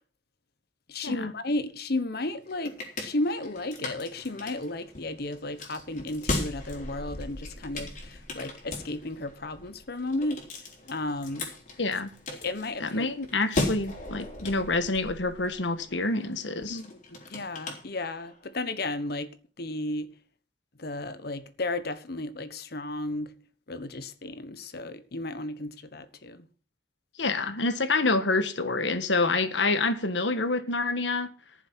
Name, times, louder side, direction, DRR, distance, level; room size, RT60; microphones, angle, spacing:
voice 1, 0.9-11.5 12.3-13.1 16.7-19.3 19.6-20.1 20.8-23.3 23.7-26.5, left 2 dB, 60° left, 1.2 m, -34 dB
sound 1, 2.2-18.5, left 2 dB, 45° left, 4.0 m, -38 dB
voice 2, 11.8-12.1 12.8-16.8 27.2-31.3, left 3 dB, 85° left, 1.5 m, -27 dB
14.5 x 7.3 x 6.1 m
head